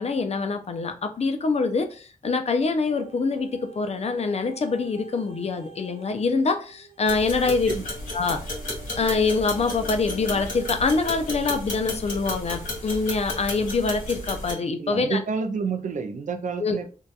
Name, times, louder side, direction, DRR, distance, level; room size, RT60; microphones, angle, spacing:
voice 1, 0.0-7.7 8.1-8.4 9.0-15.2 16.6-16.8, left 4 dB, 50° left, 0.4 m, -25 dB
sound 1, 2.9-12.0 12.6-12.7, right 3 dB, 40° right, 0.7 m, -47 dB
sound 2, 7.1-14.5, left 1 dB, 65° left, 1.3 m, -33 dB
voice 2, 7.5-7.8 14.8-16.9, right 5 dB, 60° right, 0.4 m, -29 dB
2.7 x 2.2 x 2.3 m
wide cardioid pair, 95°, 14 cm